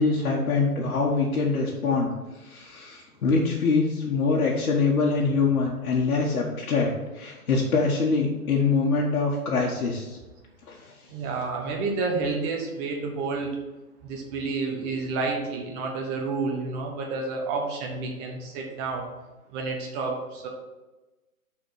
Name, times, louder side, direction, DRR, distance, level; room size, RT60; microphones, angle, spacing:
voice 1, 0.0-2.1 2.4-10.2 10.7-10.9, left 4 dB, 65° left, -5 dB, 1.6 m, -24 dB
voice 2, 11.1-13.5 14.0-19.1 19.5-20.5, right 3 dB, 25° right, 1 dB, 1.2 m, -30 dB
6.4 x 4.3 x 6.3 m, 1.1 s
hypercardioid pair, 135°, 45 cm